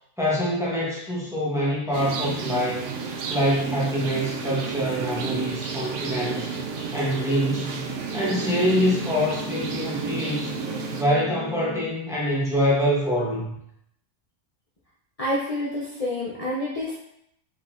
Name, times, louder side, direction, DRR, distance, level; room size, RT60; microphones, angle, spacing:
voice 1, 0.2-2.9 3.3-6.6 6.9-7.9 8.1-10.6 11.0-13.5, equal, 5° right, -6 dB, 1.0 m, -25 dB
sound 1, 1.9-11.0, right 5 dB, 85° right, 0.9 m, -32 dB
sound 2, 3.9-11.9, left 2 dB, 15° left, 1.7 m, -39 dB
voice 2, 15.2-17.0, left 1 dB, 35° left, -6 dB, 0.7 m, -28 dB
4.8 x 4.0 x 2.5 m, 0.75 s
omnidirectional pair, 1.2 m